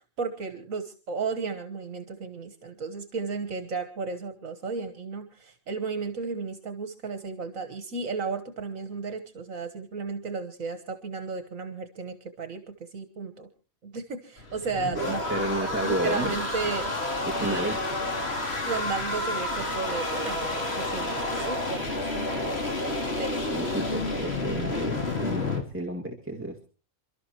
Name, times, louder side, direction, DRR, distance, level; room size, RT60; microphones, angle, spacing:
voice 1, 0.2-13.5 13.8-15.2 15.6-17.0 17.3-18.2 18.6-22.5 23.2-23.5, right 4 dB, 70° right, 8 dB, 1.8 m, -34 dB
sound 1, 14.4-25.6, left 2 dB, 45° left, 3.4 m, -30 dB
voice 2, 15.3-16.3 17.2-17.8 23.5-26.6, right 1 dB, 10° right, 2 dB, 2.1 m, -31 dB
29.0 x 13.0 x 3.0 m, 0.37 s
omnidirectional pair, 1.4 m